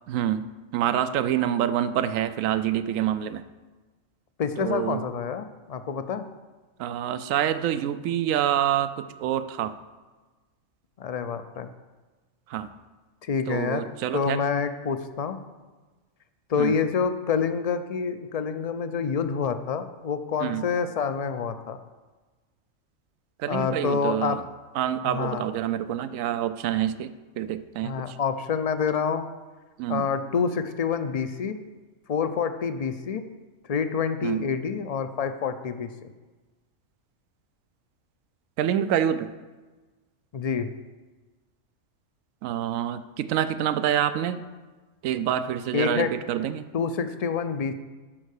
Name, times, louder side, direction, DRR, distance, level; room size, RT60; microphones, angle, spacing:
voice 1, 0.1-0.5 0.7-3.4 4.6-5.0 6.8-9.7 12.5-12.7 13.5-14.4 16.6-16.7 20.4-20.6 23.4-24.4 24.8-27.1 27.4-28.1 29.8-30.0 34.2-34.4 38.6-39.3 42.4-44.4 45.0-46.7, right 10 dB, 85° right, 13 dB, 1.0 m, -26 dB
voice 2, 4.4-6.3 11.0-11.7 13.2-13.8 14.1-15.4 16.5-21.8 23.5-24.4 25.0-25.4 27.8-29.3 29.9-31.5 32.1-33.2 33.7-36.1 40.3-40.7 45.7-46.1 46.7-47.7, left 6 dB, 60° left, 10 dB, 0.3 m, -27 dB
12.0 x 5.4 x 6.5 m, 1.3 s
omnidirectional pair, 1.3 m